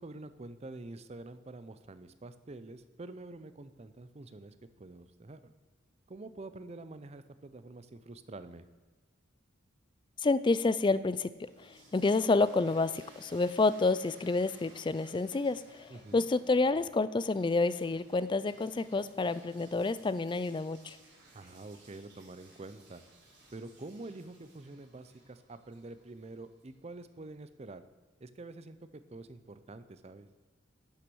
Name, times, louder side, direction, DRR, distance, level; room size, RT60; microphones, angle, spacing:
voice 1, 0.0-5.5 6.1-8.7 15.9-16.3 21.3-23.0 23.5-27.8 28.2-30.3, right 2 dB, 30° right, 12 dB, 0.5 m, -47 dB
voice 2, 10.2-21.0, left 3 dB, 25° left, 15 dB, 0.3 m, -29 dB
sound 1, 11.1-27.1, right 2 dB, 60° right, 3.5 m, -60 dB
11.5 x 6.0 x 6.2 m, 1.3 s
head